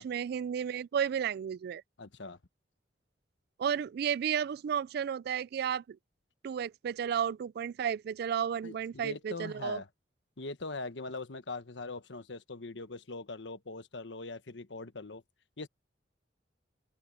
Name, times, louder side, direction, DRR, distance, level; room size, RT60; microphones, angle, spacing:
voice 1, 0.0-1.8 3.6-6.0 6.4-9.8, right 8 dB, 60° right, 0.3 m, -33 dB
voice 2, 2.0-2.4 8.6-9.9 10.4-15.2 15.6-15.7, left 3 dB, 90° left, 1.2 m, -41 dB
open air
head